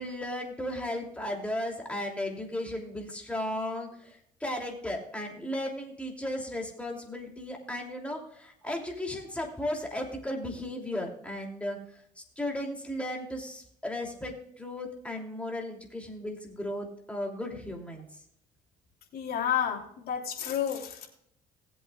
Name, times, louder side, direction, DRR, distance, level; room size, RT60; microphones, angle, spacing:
voice 1, 0.0-11.8 12.2-18.1, left 1 dB, 5° left, 1 dB, 2.9 m, -35 dB
voice 2, 19.1-21.1, left 9 dB, 65° left, 1 dB, 3.1 m, -30 dB
19.0 x 8.0 x 2.4 m, 0.68 s
cardioid pair, 110°, 17 cm